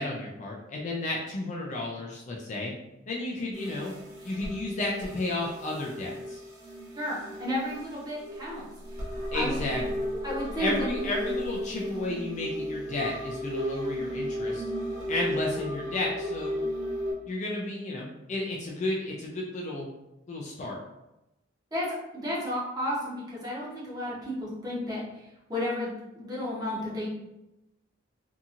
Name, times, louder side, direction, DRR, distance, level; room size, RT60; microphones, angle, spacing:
voice 1, 0.0-2.7 3.1-3.9 4.2-6.4 9.3-9.8 10.6-14.6 15.1-16.6 17.3-19.9 20.3-20.8, left 2 dB, 35° left, -2 dB, 0.3 m, -32 dB
sound 1, 3.5-17.1, equal, 40° right, 1.2 m, -35 dB
voice 2, 6.9-9.6 10.2-11.1 21.7-21.9 22.1-27.1, equal, 20° right, -7 dB, 0.8 m, -33 dB
2.8 x 2.6 x 2.4 m, 0.93 s
head